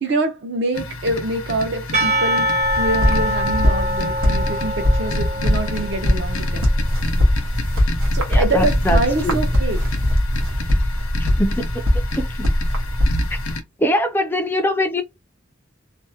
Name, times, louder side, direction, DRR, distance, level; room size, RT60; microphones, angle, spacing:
voice 1, 0.0-6.7 8.1-9.9, right 2 dB, 55° right, 0.6 m, -25 dB
sound 1, 0.7-13.6, left 2 dB, 80° left, 0.6 m, -30 dB
Percussion / Church bell, 1.9-6.3, equal, 35° right, 0.8 m, -24 dB
sound 2, 2.6-13.5, left 1 dB, 90° right, 0.9 m, -21 dB
voice 2, 8.3-9.4 11.2-11.8 12.2-12.5 13.8-15.0, equal, 10° left, 0.3 m, -22 dB
2.6 x 2.1 x 2.7 m
head